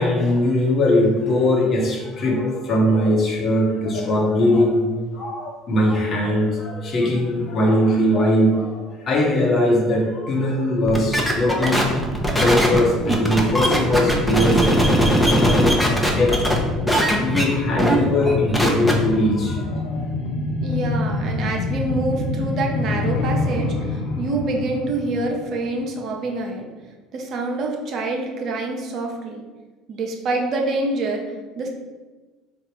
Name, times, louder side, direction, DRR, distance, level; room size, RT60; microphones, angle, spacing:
voice 1, 0.0-14.6 15.0-15.8 16.1-16.7 17.2-20.0, left 1 dB, 45° left, -1 dB, 1.1 m, -20 dB
sound 1, 10.9-16.6 16.9-17.4 17.8-18.0 18.3-18.9, equal, ahead, 0.8 m, -19 dB
sound 2, 12.9-26.0 26.4-26.5, left 3 dB, 60° left, 0.5 m, -27 dB
voice 2, 20.6-26.7 27.1-29.4 29.9-31.7, right 2 dB, 50° right, 1 dB, 0.6 m, -26 dB
3.5 x 2.4 x 4.5 m, 1.3 s
hypercardioid pair, 65°, 0 cm